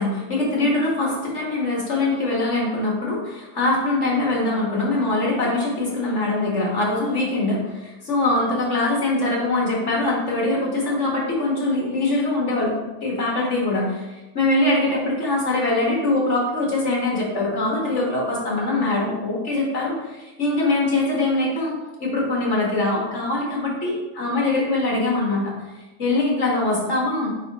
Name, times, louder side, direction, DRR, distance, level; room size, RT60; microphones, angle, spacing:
voice 1, 0.0-14.1 14.3-21.7 22.0-25.5 26.0-27.3, left 2 dB, 40° left, -3 dB, 1.6 m, -23 dB
9.2 x 3.9 x 2.9 m, 1.1 s
omnidirectional pair, 2.1 m